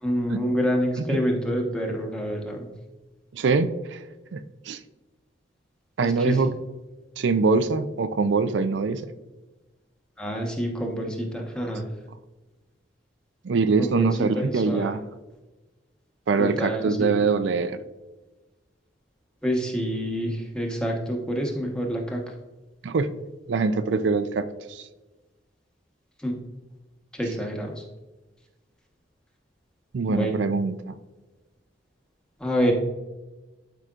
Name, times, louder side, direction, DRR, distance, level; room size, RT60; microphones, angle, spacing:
voice 1, 0.0-2.7 6.0-6.4 10.2-11.8 13.8-14.1 14.3-14.9 16.4-17.2 19.4-22.2 26.2-26.4 27.1-27.8 30.1-30.4 32.4-32.7, equal, 5° left, 0 dB, 1.1 m, -27 dB
voice 2, 3.3-4.0 4.3-4.8 6.0-6.5 7.2-9.0 13.4-15.0 16.3-17.8 22.8-23.1 23.5-24.8 29.9-30.9, right 4 dB, 70° right, 11 dB, 0.4 m, -23 dB
12.0 x 5.0 x 2.5 m, 1.1 s
head